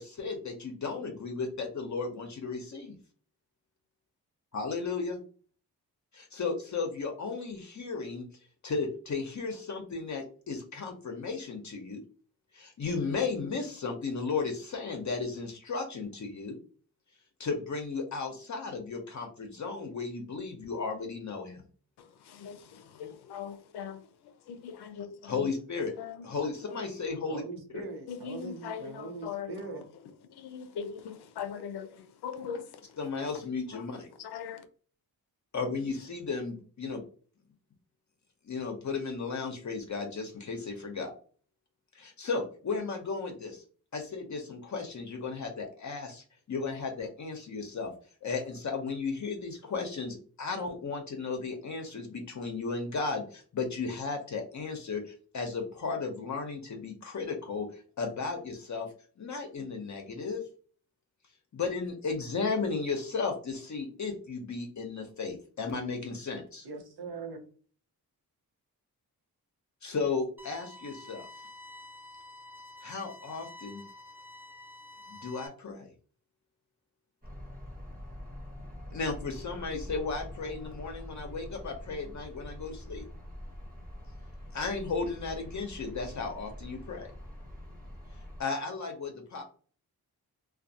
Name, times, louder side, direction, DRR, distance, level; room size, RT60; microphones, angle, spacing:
voice 1, 0.0-3.0 4.5-5.2 6.1-8.2 8.6-12.0 12.5-16.6 17.4-21.6 25.3-25.9 26.2-27.4 27.7-27.8 33.0-34.1 35.5-37.0 38.5-41.1 41.9-43.6 43.9-47.9 48.2-58.9 59.2-60.4 61.5-66.7 69.8-71.3 72.8-73.8 75.1-75.9 78.9-83.0 84.5-87.1 88.4-89.4, left 4 dB, 50° left, 0.7 m, -35 dB
voice 2, 22.0-25.5 26.0-26.3 26.6-26.9 28.1-33.3 33.7-33.9 34.2-34.7, left 7 dB, 85° left, 0.5 m, -41 dB
voice 3, 27.3-29.8 66.6-67.5, right 3 dB, 85° right, 0.9 m, -41 dB
sound 1, 70.4-75.5, left 1 dB, 5° right, 0.4 m, -49 dB
sound 2, 77.2-88.4, left 1 dB, 25° right, 1.0 m, -44 dB
2.3 x 2.3 x 2.7 m
cardioid pair, 60°, 38 cm